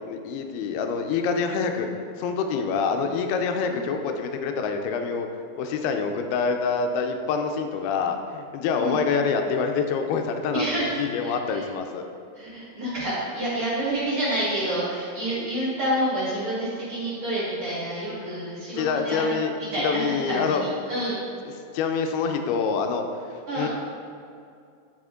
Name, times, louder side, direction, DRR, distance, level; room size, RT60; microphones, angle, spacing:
voice 1, 0.1-1.9 2.2-5.3 5.6-12.1 18.8-19.5 19.8-20.6 21.7-23.7, left 5 dB, 80° left, 5 dB, 2.5 m, -26 dB
voice 2, 10.5-11.6 12.3-21.2 23.5-23.7, right 1 dB, 40° right, -9 dB, 2.3 m, -28 dB
9.3 x 5.7 x 3.7 m, 2.4 s
omnidirectional pair, 4.6 m